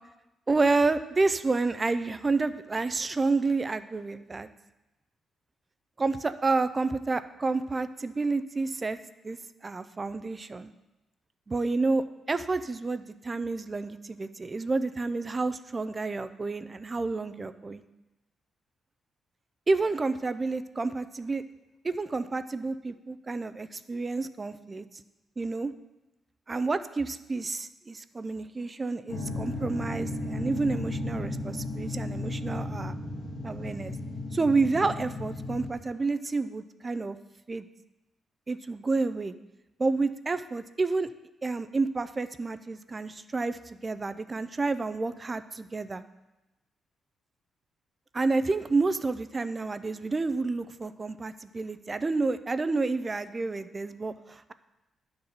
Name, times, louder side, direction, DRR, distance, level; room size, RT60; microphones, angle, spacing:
voice 1, 0.5-4.5 6.0-9.0 9.2-9.4 9.6-10.7 11.5-17.8 19.7-21.4 21.8-24.9 25.4-25.7 26.5-33.0 33.4-34.0 34.3-37.2 37.5-37.7 38.5-39.3 39.8-41.1 41.4-46.0 48.1-54.5, right 3 dB, 20° right, 12 dB, 0.3 m, -29 dB
sound 1, 29.1-35.7, left 2 dB, 70° left, 1.4 m, -34 dB
10.5 x 3.9 x 6.8 m, 0.99 s
wide cardioid pair, 160°, 0 cm